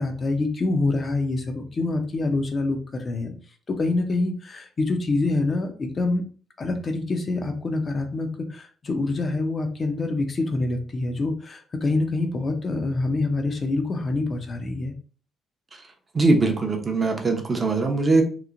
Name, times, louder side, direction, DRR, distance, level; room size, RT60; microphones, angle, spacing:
voice 1, 0.0-3.3 3.7-6.2 6.6-14.9, left 2 dB, 40° left, 5 dB, 0.5 m, -26 dB
voice 2, 16.1-18.2, right 3 dB, 35° right, 2 dB, 0.6 m, -21 dB
2.9 x 2.1 x 2.4 m, 0.40 s
cardioid pair, 90°, 0 cm